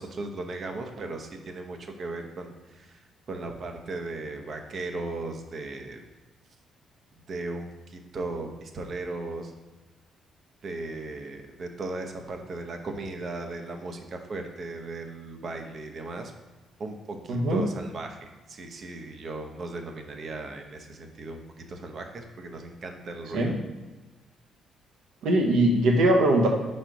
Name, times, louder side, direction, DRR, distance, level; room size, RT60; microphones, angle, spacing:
voice 1, 0.0-3.0 3.3-6.0 7.3-9.5 10.6-16.3 16.8-23.5, right 2 dB, 50° right, 4 dB, 0.8 m, -37 dB
voice 2, 17.3-17.6 23.3-23.5 25.2-26.5, right 1 dB, 80° right, 2 dB, 1.0 m, -21 dB
4.9 x 4.3 x 4.6 m, 1.2 s
cardioid pair, 90°, 0 cm